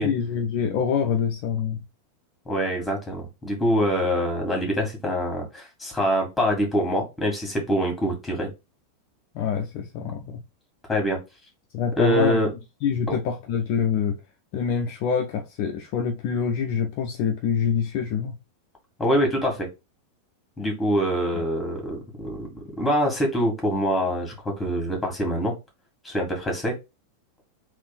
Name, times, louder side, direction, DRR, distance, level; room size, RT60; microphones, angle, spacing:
voice 1, 0.0-1.8 9.3-10.4 11.7-12.4 12.8-14.2 14.5-18.3, left 7 dB, 45° left, 0.6 m, -25 dB
voice 2, 2.5-8.5 10.9-11.2 12.0-12.5 13.1-13.2 19.0-19.7 20.6-25.6 26.0-26.7, equal, 10° left, 1.8 m, -25 dB
3.6 x 2.6 x 4.0 m
figure-of-eight pair, 90°, 0 cm